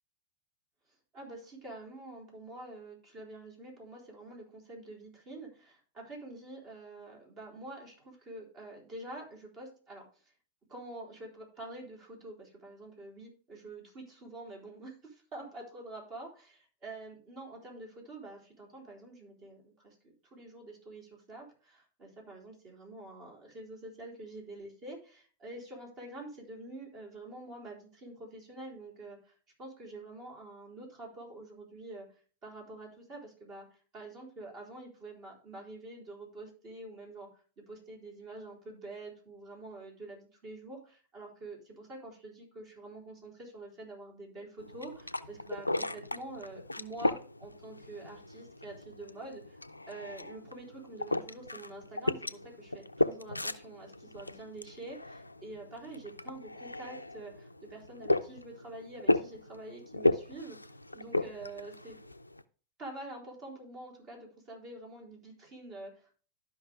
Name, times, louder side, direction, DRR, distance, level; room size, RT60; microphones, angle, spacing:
voice 1, 1.1-10.3 10.7-32.1 32.4-49.6 49.9-62.0 62.8-66.2, right 2 dB, 35° right, -1 dB, 4.1 m, -47 dB
sound 1, 44.6-62.4, left 2 dB, 85° left, 0.5 m, -35 dB
12.5 x 5.6 x 3.5 m, 0.40 s
figure-of-eight pair, 90°, 0 cm